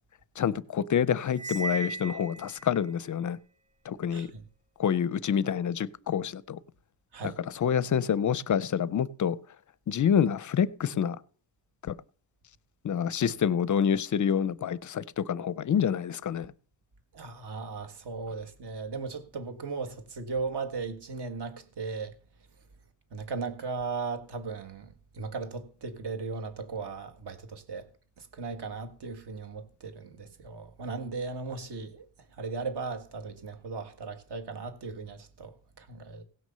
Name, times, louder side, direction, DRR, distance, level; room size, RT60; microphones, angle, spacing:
voice 1, 0.4-3.4 3.9-4.3 4.8-6.6 7.2-9.4 9.9-11.2 11.8-11.9 12.8-16.5, left 8 dB, 40° left, 0.5 m, -27 dB
Cymbal, 1.3-2.8, right 3 dB, 15° right, 0.6 m, -36 dB
voice 2, 4.1-4.4 7.1-7.4 17.1-22.2 23.1-27.9 28.2-36.2, right 4 dB, 55° right, 1.6 m, -37 dB
16.5 x 6.2 x 6.7 m
wide cardioid pair, 180°, 47 cm